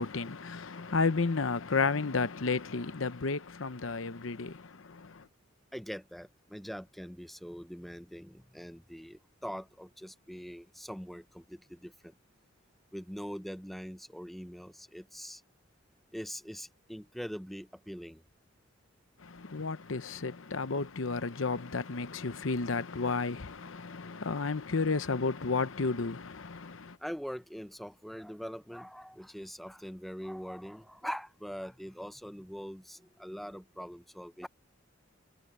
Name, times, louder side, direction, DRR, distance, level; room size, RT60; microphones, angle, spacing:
voice 1, 0.0-5.3 19.2-27.0, left 4 dB, 75° left, 0.9 m, -32 dB
voice 2, 5.7-12.2 12.9-15.4 16.1-18.2 27.0-34.5, equal, ahead, 0.7 m, -43 dB
head